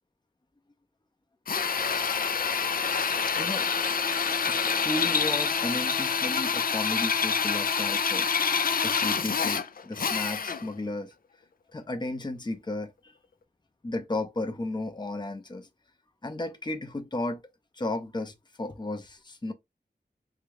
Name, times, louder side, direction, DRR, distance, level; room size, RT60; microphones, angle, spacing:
Drill, 1.5-10.7, left 6 dB, 60° left, 0.4 m, -27 dB
voice 1, 3.4-3.7 4.2-4.6 4.8-8.3 8.8-11.1 11.7-13.1 13.8-15.7 16.2-17.4 17.7-19.5, left 2 dB, 25° left, 0.7 m, -34 dB
3.7 x 2.3 x 3.4 m
wide cardioid pair, 80°, 17 cm